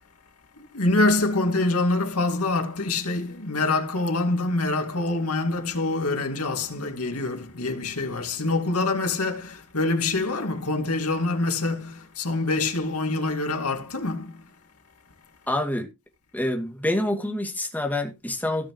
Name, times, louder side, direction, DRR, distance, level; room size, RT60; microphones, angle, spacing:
voice 1, 0.5-14.5, left 2 dB, 90° left, 2.5 m, -25 dB
voice 2, 15.5-15.9 16.3-18.7, left 1 dB, 10° left, 2.4 m, -27 dB
17.5 x 6.0 x 3.1 m
head